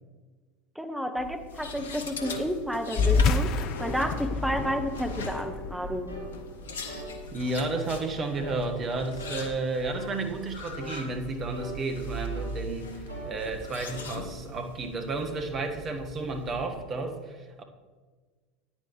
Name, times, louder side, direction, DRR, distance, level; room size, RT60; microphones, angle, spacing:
voice 1, 0.7-3.5 3.8-6.1, equal, 5° right, 5 dB, 1.3 m, -31 dB
sound 1, 1.2-16.7, left 1 dB, 75° left, 1.0 m, -41 dB
sound 2, 2.2-2.4 3.0-3.2 3.7-4.0 4.5-4.8 5.3-5.5 6.1-6.3 6.9-7.1 7.6-7.9 8.4-8.7 9.2-9.4 10.0-10.2 10.8-11.0 11.5-11.8 12.3-12.6 13.1-13.3 13.9-14.1, equal, 80° right, 2.9 m, -40 dB
sound 3, 2.9-7.8, left 4 dB, 50° left, 0.7 m, -29 dB
voice 2, 6.8-17.6, right 3 dB, 35° right, 5 dB, 1.6 m, -32 dB
14.5 x 9.9 x 3.2 m, 1.4 s
figure-of-eight pair, 75°, 0 cm